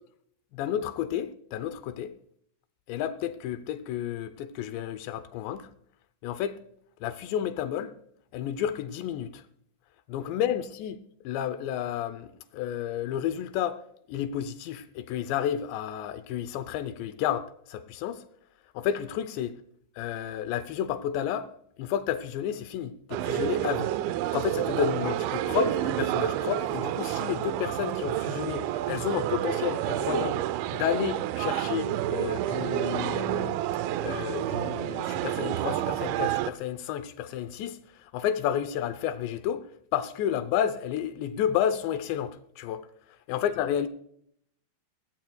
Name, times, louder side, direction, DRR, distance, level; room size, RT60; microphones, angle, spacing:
voice 1, 0.5-2.1 2.9-5.7 6.2-6.6 7.0-7.9 8.3-9.4 10.1-11.0 11.2-13.8 14.1-18.2 18.7-19.6 20.0-21.5 21.8-23.9 24.3-30.4 30.7-33.6 34.0-42.9 43.3-43.9, left 10 dB, 80° left, 2.7 m, -31 dB
sound 1, 23.1-36.5, right 12 dB, 80° right, 2.8 m, -29 dB
19.0 x 16.5 x 2.3 m
omnidirectional pair, 5.4 m